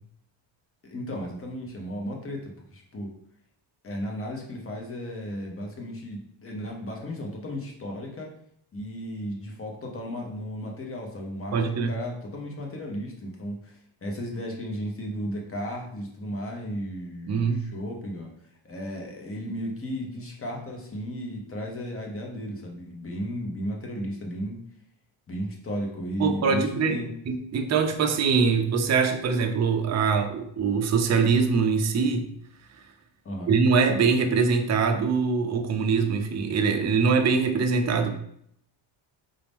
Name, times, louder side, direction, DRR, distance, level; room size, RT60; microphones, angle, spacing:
voice 1, 0.8-3.1 3.8-8.3 8.7-18.3 18.6-24.6 25.3-27.1 33.2-33.6, equal, 25° left, 0 dB, 1.0 m, -34 dB
voice 2, 11.5-11.9 17.3-17.6 26.2-32.3 33.5-38.2, right 5 dB, 35° right, 5 dB, 0.5 m, -23 dB
5.2 x 2.8 x 3.5 m, 0.69 s
cardioid pair, 145°, 49 cm